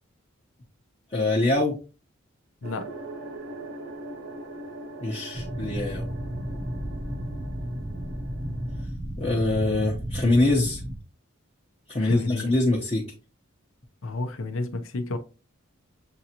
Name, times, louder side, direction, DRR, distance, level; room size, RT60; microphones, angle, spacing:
voice 1, 1.1-1.8 5.0-6.1 9.2-10.8 11.9-13.1, left 2 dB, 30° left, 0.8 m, -24 dB
sound 1, 2.6-8.9, right 2 dB, 60° right, 0.7 m, -41 dB
sound 2, 5.3-11.0, equal, 15° right, 0.6 m, -33 dB
voice 2, 12.0-12.5 14.0-15.2, left 2 dB, 70° left, 0.6 m, -31 dB
6.8 x 2.6 x 2.8 m
head